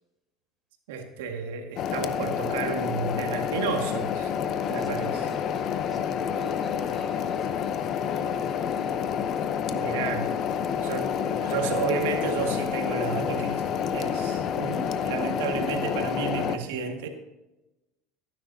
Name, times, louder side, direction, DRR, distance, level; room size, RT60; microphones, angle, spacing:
voice 1, 0.9-4.3 4.7-5.1 9.7-10.3 10.8-13.6 13.9-17.1, right 6 dB, 85° right, 4 dB, 1.9 m, -32 dB
sound 1, 1.8-16.6, left 8 dB, 50° left, 0.7 m, -28 dB
voice 2, 4.6-9.7 14.1-14.4, left 1 dB, 20° left, 2 dB, 4.3 m, -48 dB
15.0 x 10.5 x 2.8 m, 1.0 s
supercardioid pair, 110°, 0 cm